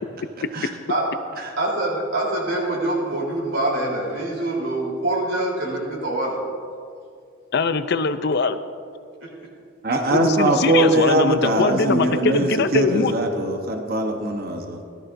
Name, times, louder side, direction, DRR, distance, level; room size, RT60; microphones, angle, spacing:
voice 1, 1.6-6.4 9.2-9.3, right 1 dB, 65° right, -3 dB, 3.7 m, -25 dB
voice 2, 7.5-8.6 10.1-13.1, left 4 dB, 55° left, 11 dB, 0.5 m, -22 dB
voice 3, 9.8-14.8, right 1 dB, 50° right, 3 dB, 1.1 m, -21 dB
18.0 x 13.5 x 2.7 m, 2.3 s
head